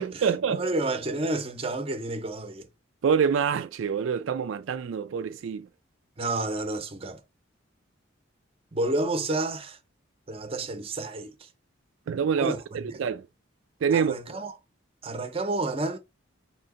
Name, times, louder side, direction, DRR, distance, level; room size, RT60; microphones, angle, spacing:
voice 1, 0.0-0.6 3.0-5.7 12.1-13.3 13.8-14.4, right 7 dB, 70° right, 0.3 m, -26 dB
voice 2, 0.5-2.7 6.2-7.2 8.7-9.8 10.3-11.3 12.4-13.0 13.9-14.5 15.0-16.0, right 2 dB, 30° right, 0.7 m, -30 dB
4.3 x 2.8 x 3.7 m
head